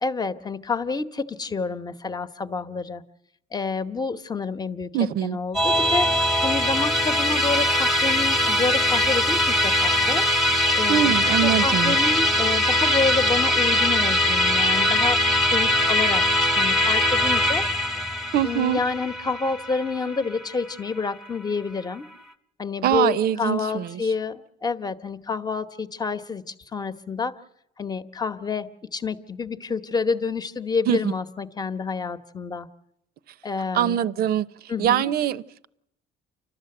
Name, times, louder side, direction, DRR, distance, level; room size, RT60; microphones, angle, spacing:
voice 1, 0.0-3.0 3.5-4.9 5.2-6.1 6.4-10.2 10.7-11.2 11.4-16.2 16.5-17.6 18.4-22.1 22.6-27.3 27.8-32.7 33.4-34.0 34.7-35.1, left 4 dB, 25° left, 1.0 m, -28 dB
voice 2, 4.9-5.4 10.9-12.0 18.3-18.8 22.8-24.0 30.9-31.0 33.7-34.5 34.8-35.7, right 11 dB, 65° right, 0.7 m, -23 dB
Musical instrument, 5.5-21.1, left 1 dB, ahead, 1.1 m, -21 dB
29.5 x 12.5 x 7.8 m
cardioid pair, 110°, 17 cm